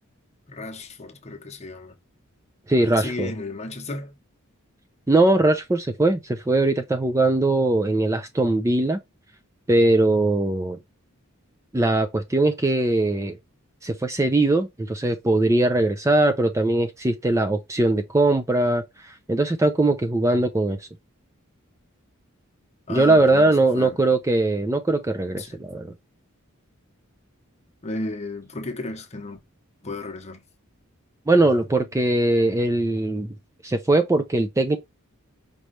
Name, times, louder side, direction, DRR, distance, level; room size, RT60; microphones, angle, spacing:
voice 1, 0.5-1.9 2.8-4.2 22.9-24.1 25.4-25.6 27.8-29.4 29.8-30.4, left 2 dB, 30° left, 0.9 m, -34 dB
voice 2, 2.7-3.3 5.1-9.0 9.7-10.8 11.7-13.4 13.8-20.8 22.9-25.9 31.3-33.3 33.6-34.8, right 2 dB, 15° right, 0.4 m, -21 dB
5.3 x 3.1 x 3.2 m
head